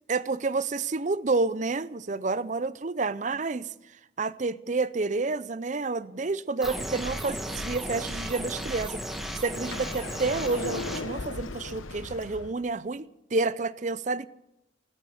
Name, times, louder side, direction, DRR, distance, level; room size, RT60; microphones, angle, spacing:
voice 1, 0.1-3.7 4.2-9.0 9.3-14.3, right 3 dB, 35° right, 0.5 m, -29 dB
sound 1, 6.6-11.0, equal, ahead, 1.5 m, -35 dB
Sliding door, 9.5-12.5, left 3 dB, 85° left, 1.0 m, -37 dB
16.5 x 12.5 x 6.4 m
head